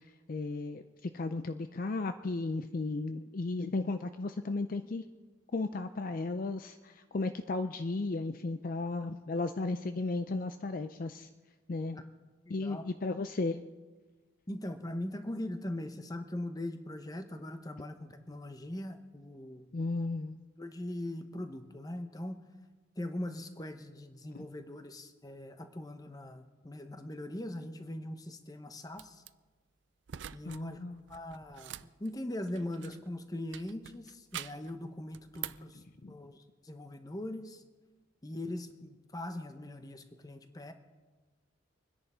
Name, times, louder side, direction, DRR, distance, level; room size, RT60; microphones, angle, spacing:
voice 1, 0.3-5.0 5.5-11.3 11.7-12.0 12.5-13.6 19.7-20.3 24.3-24.5 30.5-31.0 36.0-36.1, left 3 dB, 45° left, 9 dB, 0.5 m, -35 dB
voice 2, 12.5-12.8 14.5-19.7 20.6-22.4 23.0-29.2 30.3-30.8 31.1-37.6 38.2-40.7, left 1 dB, 20° left, 8 dB, 0.9 m, -41 dB
sound 1, 28.9-29.3 30.1-30.6 30.9-33.1 33.5-34.7 35.1-35.7, right 11 dB, 65° right, 0.4 m, -45 dB
25.5 x 10.5 x 4.3 m, 1.3 s
head